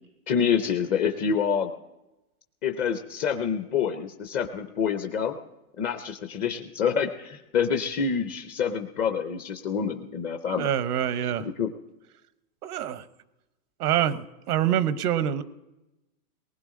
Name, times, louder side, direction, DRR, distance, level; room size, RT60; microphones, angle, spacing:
voice 1, 0.3-1.7 2.6-5.4 5.8-10.7 11.4-11.7, left 7 dB, 20° left, 6 dB, 0.4 m, -27 dB
voice 2, 10.5-11.5 12.6-13.0 13.8-15.4, right 10 dB, 90° right, 14 dB, 1.0 m, -26 dB
19.5 x 18.5 x 3.7 m, 0.98 s
supercardioid pair, 140°, 45 cm